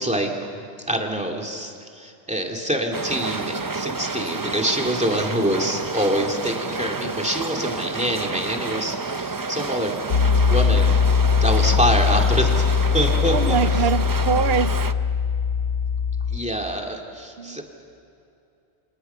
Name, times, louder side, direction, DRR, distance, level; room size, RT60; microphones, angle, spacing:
voice 1, 0.0-10.0 10.5-11.0 11.4-12.6 12.9-13.6 16.3-17.6, equal, 5° right, 2.4 m, -25 dB
sound 1, 2.9-14.9, right 3 dB, 25° right, 0.5 m, -30 dB
Piano, 10.1-16.4, left 6 dB, 70° left, 1.1 m, -20 dB
voice 2, 13.3-14.9 17.4-17.6, right 7 dB, 65° right, 0.9 m, -24 dB
28.5 x 27.0 x 5.6 m
omnidirectional pair, 1.2 m